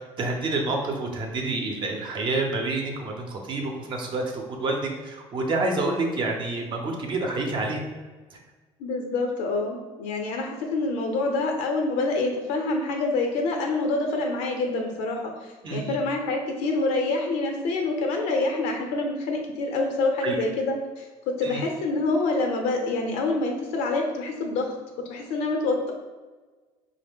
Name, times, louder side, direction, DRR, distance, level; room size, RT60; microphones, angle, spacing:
voice 1, 0.2-7.8 15.6-16.0 20.2-20.4 21.4-21.6, right 2 dB, 45° right, 2 dB, 0.7 m, -28 dB
voice 2, 8.8-24.7 25.1-25.9, left 2 dB, 85° left, 2 dB, 0.7 m, -26 dB
4.1 x 2.1 x 3.5 m, 1.3 s
cardioid pair, 120°, 12 cm